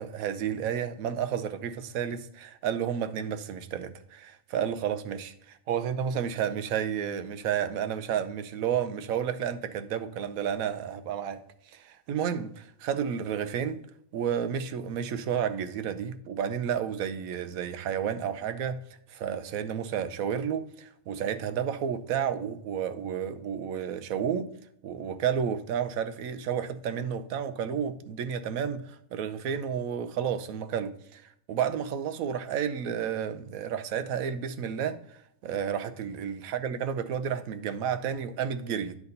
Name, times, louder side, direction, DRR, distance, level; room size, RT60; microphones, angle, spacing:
voice 1, 0.0-11.4 11.7-13.8 14.1-18.8 19.1-24.5 24.8-31.2 31.5-39.0, right 8 dB, 75° right, 1.1 m, -31 dB
9.5 x 4.1 x 5.2 m
omnidirectional pair, 1.5 m